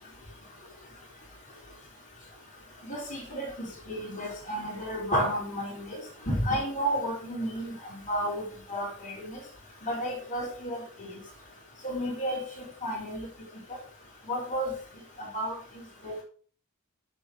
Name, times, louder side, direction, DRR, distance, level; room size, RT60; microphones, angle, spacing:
voice 1, 2.9-6.0 6.3-7.7 8.1-9.4 9.9-11.1 11.8-13.3 14.3-14.7 15.2-15.5 16.0-16.2, equal, 35° left, -4 dB, 3.8 m, -32 dB
10.5 x 6.8 x 5.0 m, 0.41 s
head